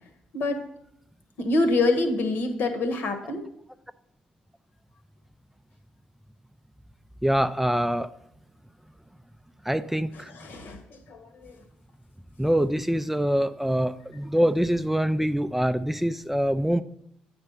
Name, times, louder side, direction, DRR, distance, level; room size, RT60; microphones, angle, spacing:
voice 1, 1.4-3.4 10.1-11.6, left 2 dB, 65° left, 7 dB, 1.2 m, -26 dB
voice 2, 7.2-8.1 9.7-10.3 12.4-16.8, equal, 5° right, 11 dB, 0.4 m, -24 dB
8.5 x 4.5 x 5.5 m, 0.75 s
hypercardioid pair, 50°, 3 cm